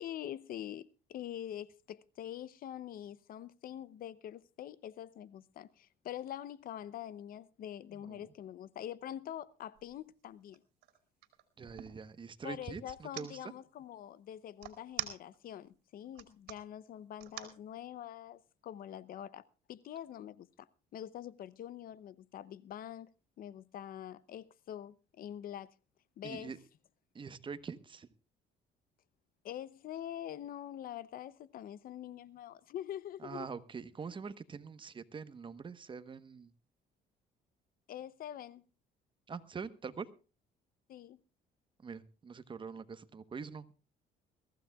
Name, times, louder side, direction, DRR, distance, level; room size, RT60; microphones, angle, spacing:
voice 1, 0.0-10.6 12.4-20.7 20.9-23.1 23.4-25.7 26.2-26.5 29.4-33.5 37.9-38.7 40.9-41.2, left 11 dB, 60° left, 0.7 m, -45 dB
voice 2, 8.0-8.3 11.6-13.4 26.2-26.6 27.1-28.1 33.2-36.5 39.3-40.1 41.8-43.7, right 5 dB, 30° right, 1.1 m, -44 dB
sound 1, 9.8-10.0 10.4-12.0 12.9-13.3 14.6-15.6 16.0-16.6 17.2-17.6, right 14 dB, 80° right, 2.6 m, -43 dB
22.5 x 15.0 x 2.3 m
cardioid pair, 110°, 17 cm